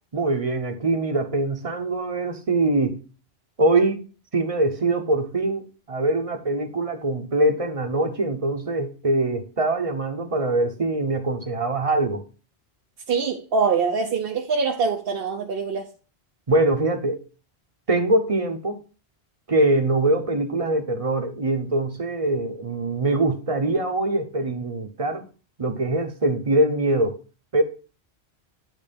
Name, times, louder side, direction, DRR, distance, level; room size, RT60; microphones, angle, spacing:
voice 1, 0.1-3.0 3.6-4.0 4.3-5.6 5.9-12.2 16.5-17.2 17.9-18.8 19.5-25.2 25.6-27.2 27.5-27.6, right 2 dB, 35° right, 0.9 m, -23 dB
voice 2, 13.1-15.9, right 5 dB, 65° right, 0.9 m, -24 dB
9.1 x 3.2 x 5.2 m
omnidirectional pair, 1.1 m